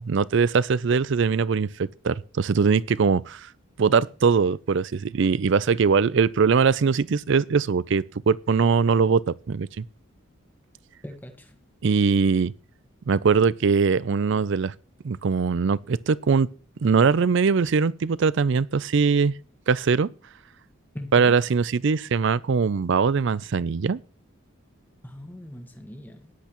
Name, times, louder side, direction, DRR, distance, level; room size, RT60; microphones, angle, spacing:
voice 1, 0.0-3.5 3.8-9.8 11.8-12.5 13.1-14.7 15.0-16.5 16.8-19.3 19.7-20.1 21.1-24.0, right 5 dB, 60° right, 0.4 m, -21 dB
voice 2, 11.0-11.6 20.9-21.4 25.0-26.3, left 1 dB, 10° left, 1.3 m, -40 dB
14.0 x 10.5 x 3.0 m
head